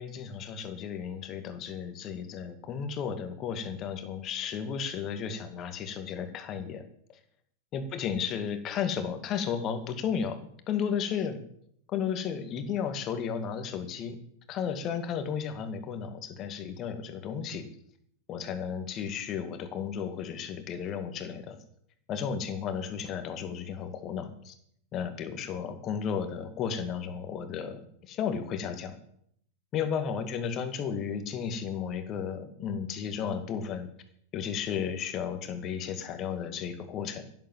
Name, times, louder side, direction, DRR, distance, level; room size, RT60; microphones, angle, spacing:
voice 1, 0.0-6.8 7.7-10.4 10.7-11.4 11.9-14.2 14.5-17.7 18.3-21.6 22.1-24.5 24.9-27.8 28.1-28.9 29.7-33.9 34.3-37.2, left 7 dB, 35° left, 8 dB, 2.3 m, -33 dB
11.0 x 10.5 x 8.0 m, 0.68 s
figure-of-eight pair, 95°, 0 cm